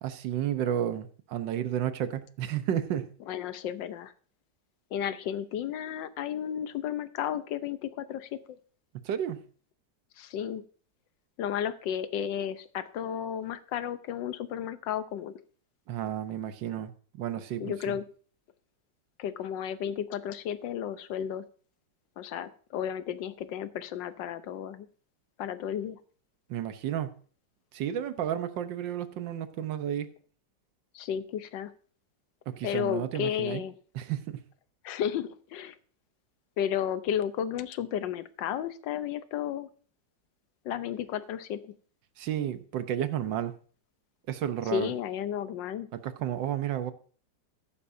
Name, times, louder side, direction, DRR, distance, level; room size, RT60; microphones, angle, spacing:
voice 1, 0.0-3.1 8.9-9.4 15.9-17.9 26.5-27.1 27.7-30.1 32.5-33.6 33.9-34.4 42.2-43.5 44.3-44.9 45.9-46.9, right 10 dB, 80° right, 1.5 m, -32 dB
voice 2, 3.3-4.1 4.9-8.4 10.2-10.6 11.4-15.4 17.6-18.0 19.2-21.4 22.2-24.9 25.4-26.0 30.9-31.7 32.6-33.7 34.8-35.8 36.6-39.7 40.6-41.7 44.7-45.9, left 9 dB, 80° left, 1.4 m, -33 dB
14.0 x 11.0 x 2.6 m
omnidirectional pair, 2.0 m